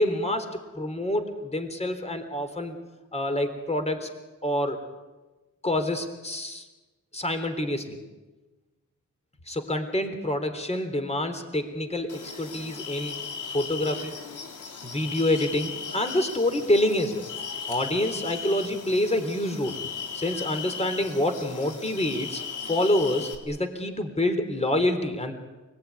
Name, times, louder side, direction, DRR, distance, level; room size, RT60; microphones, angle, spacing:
voice 1, 0.0-2.8 3.1-4.1 4.4-4.8 5.6-6.7 7.1-8.0 9.5-13.2 13.5-14.1 14.8-17.2 17.7-19.8 20.1-25.3, left 1 dB, 20° left, 7 dB, 3.6 m, -27 dB
sound 1, 12.1-23.3, left 6 dB, 80° left, 3.9 m, -37 dB
28.5 x 20.0 x 9.7 m, 1.2 s
cardioid pair, 90°, 30 cm